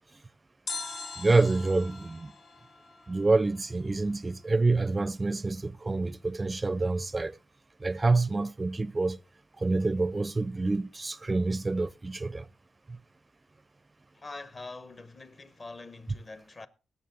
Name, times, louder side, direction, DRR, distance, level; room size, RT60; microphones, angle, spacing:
sound 1, 0.7-3.7 4.0-4.1, left 4 dB, 75° left, 1.8 m, -42 dB
voice 1, 1.2-2.3 3.1-7.4 7.8-9.2 9.6-12.5 12.9-13.0, right 3 dB, 25° right, 0.4 m, -27 dB
voice 2, 14.1-16.7, left 3 dB, 40° left, 1.0 m, -44 dB
17.0 x 6.8 x 3.8 m
cardioid pair, 80°, 0 cm